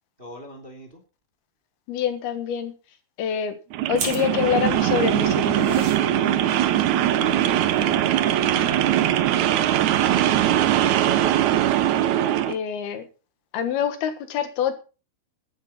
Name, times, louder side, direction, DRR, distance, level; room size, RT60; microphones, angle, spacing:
voice 1, 0.2-1.0 7.2-11.4, left 1 dB, 15° right, 3 dB, 2.4 m, -41 dB
voice 2, 1.9-2.7 3.2-3.5 3.9-5.9 12.5-13.0 13.5-14.7, left 8 dB, 75° left, 9 dB, 3.4 m, -26 dB
sound 1, 3.7-12.6, right 11 dB, 75° right, 1.7 m, -21 dB
sound 2, 3.9-9.7, right 5 dB, 45° right, 4.2 m, -40 dB
15.0 x 11.5 x 4.3 m, 0.34 s
omnidirectional pair, 4.6 m